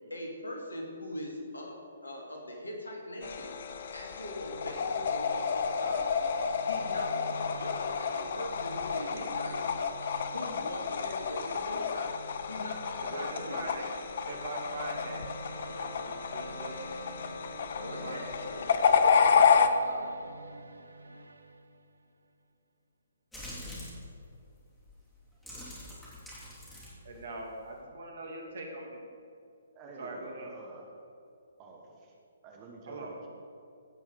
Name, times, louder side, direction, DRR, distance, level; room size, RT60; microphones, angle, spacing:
voice 1, 0.1-3.5 3.9-6.2 6.6-9.7 10.3-12.2 12.5-13.9 17.7-18.8, left 1 dB, 70° left, 1 dB, 2.6 m, -41 dB
sound 1, 3.2-19.7, left 6 dB, 45° left, 0.7 m, -30 dB
sound 2, 4.3-22.1, right 2 dB, 70° right, 0.8 m, -47 dB
voice 2, 13.5-13.9 14.3-15.2 15.8-16.8 17.8-18.2 19.8-20.2 27.0-28.9 30.0-30.5 32.9-33.3, right 2 dB, 50° right, 1 dB, 2.5 m, -42 dB
sound 3, 23.3-24.0 24.8-25.0 25.3-27.8, left 1 dB, 5° left, 3.8 m, -45 dB
voice 3, 29.7-30.9 31.6-32.1 32.4-33.3, right 3 dB, 25° right, 0 dB, 1.4 m, -49 dB
16.5 x 6.2 x 6.7 m, 2.4 s
figure-of-eight pair, 130°, 0 cm